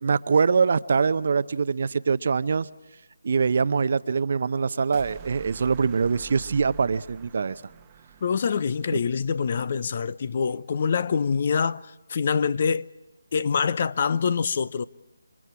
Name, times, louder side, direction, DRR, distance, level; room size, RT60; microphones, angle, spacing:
voice 1, 0.0-2.7 3.2-7.6, right 5 dB, 50° right, 0.7 m, -23 dB
sound 1, 4.9-9.2, right 11 dB, 20° right, 1.0 m, -47 dB
voice 2, 8.2-11.8 12.1-12.9 13.3-14.8, left 6 dB, 45° left, 0.7 m, -25 dB
29.0 x 24.5 x 4.8 m
figure-of-eight pair, 155°, 0 cm